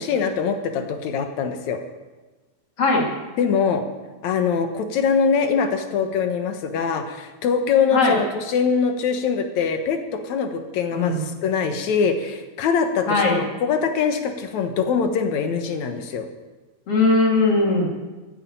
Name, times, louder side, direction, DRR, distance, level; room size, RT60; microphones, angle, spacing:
voice 1, 0.0-1.8 3.4-3.8 4.2-10.0 10.2-16.3, left 6 dB, 70° left, 7 dB, 2.5 m, -23 dB
voice 2, 10.9-11.2 13.1-13.4 16.9-17.9, left 3 dB, 50° left, -1 dB, 3.1 m, -19 dB
15.0 x 9.0 x 8.7 m, 1.2 s
omnidirectional pair, 3.5 m